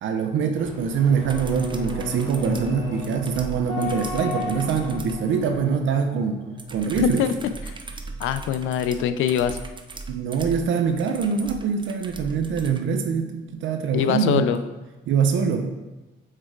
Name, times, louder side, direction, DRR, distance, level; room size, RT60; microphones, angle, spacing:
voice 1, 0.0-6.4 6.7-7.2 10.1-14.5 15.1-15.7, right 6 dB, 75° right, 6 dB, 0.6 m, -24 dB
sound 1, 0.5-5.6, left 5 dB, 30° left, 2.1 m, -37 dB
sound 2, 0.8-6.7 7.0-7.5 7.8-8.2, equal, 60° left, 2.0 m, -35 dB
sound 3, 1.2-5.2 6.6-12.8 14.5-14.6, right 3 dB, 25° right, 0.6 m, -38 dB
voice 2, 7.0-7.3 7.7-7.8 8.2-9.6 13.9-14.6, left 9 dB, 85° left, 11 dB, 0.5 m, -23 dB
6.5 x 4.6 x 3.7 m, 1.1 s
cardioid pair, 90°, 20 cm